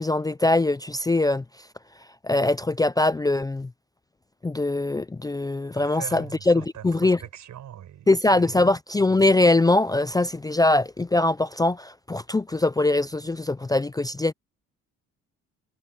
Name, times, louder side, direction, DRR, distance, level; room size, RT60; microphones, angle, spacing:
voice 1, 0.0-1.7 2.0-3.7 4.4-7.2 8.1-14.3, left 2 dB, 10° left, 0.5 m, -22 dB
voice 2, 5.7-8.6, right 11 dB, 70° right, 7.9 m, -41 dB
cardioid pair, 90°, 30 cm